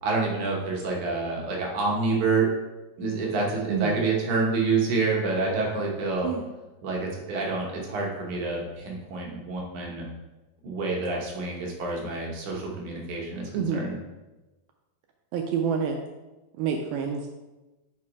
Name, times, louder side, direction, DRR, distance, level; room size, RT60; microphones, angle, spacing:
voice 1, 0.0-2.5 3.0-6.3 6.8-10.1 10.6-13.9, right 3 dB, 65° right, -2 dB, 2.2 m, -28 dB
voice 2, 13.5-13.9 15.3-16.0 16.6-17.3, right 7 dB, 80° right, 3 dB, 2.2 m, -27 dB
6.0 x 4.6 x 4.7 m, 1.1 s
omnidirectional pair, 4.5 m